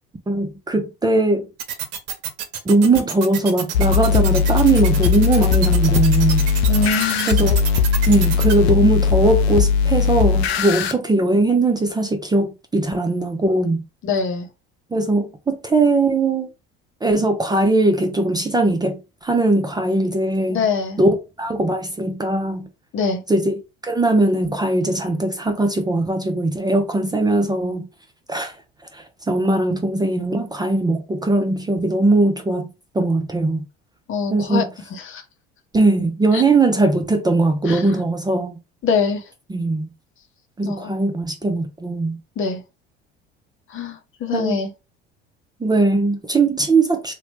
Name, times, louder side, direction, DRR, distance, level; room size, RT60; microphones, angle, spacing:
voice 1, 0.3-1.4 2.7-6.5 7.3-7.6 8.1-13.8 14.9-16.5 17.0-20.6 21.0-21.1 21.4-22.7 23.3-23.5 23.8-27.8 28.3-28.6 28.9-32.7 32.9-33.6 34.3-34.6 35.7-38.6 39.5-39.9 40.6-42.2 44.3-44.6 45.6-47.1, right 2 dB, 15° right, 0.5 m, -19 dB
sound 1, 1.6-8.5, right 8 dB, 55° right, 0.8 m, -28 dB
sound 2, 3.7-10.9, left 6 dB, 85° left, 0.5 m, -18 dB
voice 2, 6.7-7.5 14.0-14.5 20.5-21.0 22.9-23.2 34.1-34.6 34.9-35.2 36.3-36.4 37.7-37.9 38.8-39.2 40.6-41.0 42.4-42.6 43.7-44.7, left 5 dB, 40° left, 0.8 m, -24 dB
2.9 x 2.1 x 3.1 m
hypercardioid pair, 70°, 30 cm